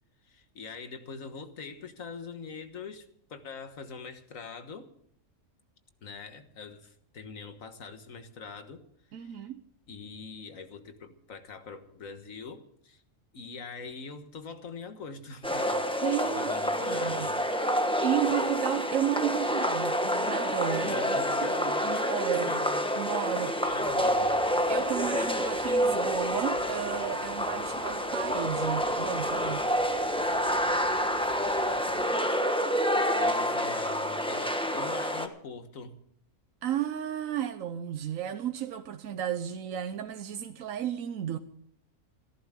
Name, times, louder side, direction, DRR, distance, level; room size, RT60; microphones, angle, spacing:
voice 1, 0.3-4.9 6.0-8.8 9.1-9.5 9.9-13.0 13.3-15.9 16.2-17.4 20.8-22.8 23.5-24.4 32.7-36.0, left 5 dB, 80° left, 1.8 m, -43 dB
voice 2, 9.1-9.6 16.0-16.5 16.8-17.3 18.0-21.0 21.4-22.6 23.0-23.6 24.7-29.7 36.6-41.4, right 10 dB, 80° right, 1.2 m, -33 dB
sound 1, 15.4-35.3, equal, 5° left, 1.1 m, -28 dB
Water, 23.6-32.0, left 1 dB, 25° left, 2.1 m, -49 dB
27.5 x 11.0 x 3.7 m
omnidirectional pair, 1.4 m